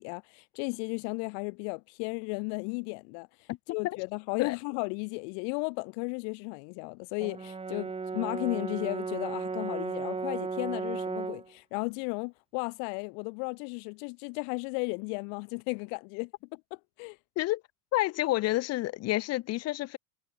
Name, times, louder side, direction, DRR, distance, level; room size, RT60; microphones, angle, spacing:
voice 1, 0.0-16.6 17.0-17.2, left 40 dB or more, 65° left, 1.4 m, -35 dB
Brass instrument, 7.2-11.5, right 4 dB, 10° right, 1.7 m, -35 dB
voice 2, 17.9-20.0, left 17 dB, 35° left, 0.5 m, -29 dB
cardioid pair, 150°, 49 cm